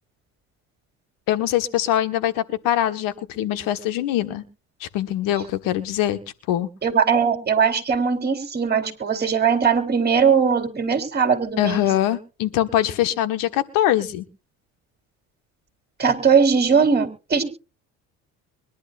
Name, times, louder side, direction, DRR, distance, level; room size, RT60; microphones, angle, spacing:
voice 1, 1.3-4.4 4.8-6.2 6.5-6.7 11.6-14.2, left 12 dB, 80° left, 11 dB, 1.5 m, -23 dB
voice 2, 6.8-11.9 16.0-17.4, right 6 dB, 30° right, 6 dB, 3.7 m, -20 dB
23.5 x 11.0 x 2.5 m, 0.32 s
supercardioid pair, 90°, 33 cm